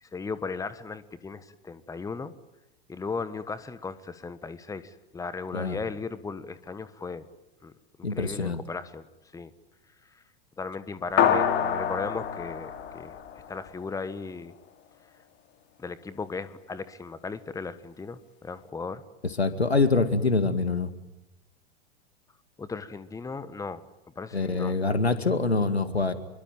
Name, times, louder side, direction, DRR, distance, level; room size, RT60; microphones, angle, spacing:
voice 1, 0.0-2.3 2.9-7.3 7.6-7.7 8.1-9.1 9.3-9.5 10.1-10.2 10.6-13.1 13.5-14.5 15.8-19.0 22.6-23.8 24.1-24.8, left 4 dB, 10° left, 14 dB, 1.4 m, -36 dB
voice 2, 8.0-8.6 19.2-20.9 24.3-26.1, left 3 dB, 90° left, 11 dB, 2.2 m, -25 dB
sound 1, 11.2-13.9, left 8 dB, 35° left, 2.8 m, -26 dB
26.5 x 23.0 x 9.1 m, 0.96 s
figure-of-eight pair, 95°, 31 cm